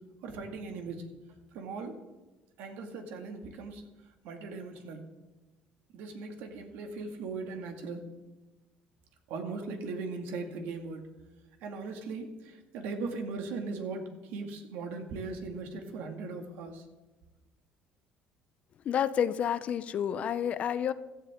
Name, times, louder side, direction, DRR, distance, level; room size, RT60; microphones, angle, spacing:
voice 1, 0.2-1.0 1.5-2.0 2.6-3.8 4.2-5.0 5.9-8.0 9.3-11.1 11.6-16.8, right 4 dB, 75° right, 4 dB, 2.2 m, -39 dB
voice 2, 18.8-20.9, left 9 dB, 45° left, 14 dB, 0.6 m, -29 dB
16.0 x 13.5 x 3.7 m, 1.1 s
cardioid pair, 135°, 3 cm